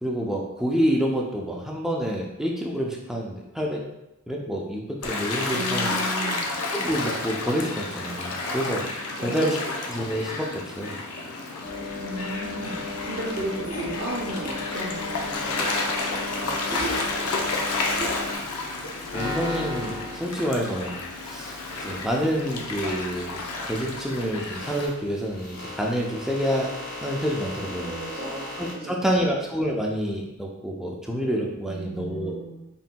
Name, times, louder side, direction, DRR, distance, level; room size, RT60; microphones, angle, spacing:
voice 1, 0.0-3.8 4.3-5.9 6.7-8.9 9.2-9.6 9.9-11.0 19.1-26.7 27.0-27.9 28.6-32.4, equal, ahead, -2 dB, 0.5 m, -28 dB
Gull seagull / Waves surf, 5.0-24.9, left 3 dB, 90° left, 0.6 m, -31 dB
voice 2, 5.5-6.4 9.2-9.7 12.0-17.4 27.8-28.5 28.7-29.2 31.6-32.5, right 1 dB, 45° right, -5 dB, 0.7 m, -35 dB
sound 1, 11.6-18.4, left 2 dB, 45° left, 1.2 m, -35 dB
sound 2, 16.8-28.7, left 2 dB, 70° left, 1.5 m, -38 dB
4.3 x 3.9 x 2.2 m, 0.91 s
head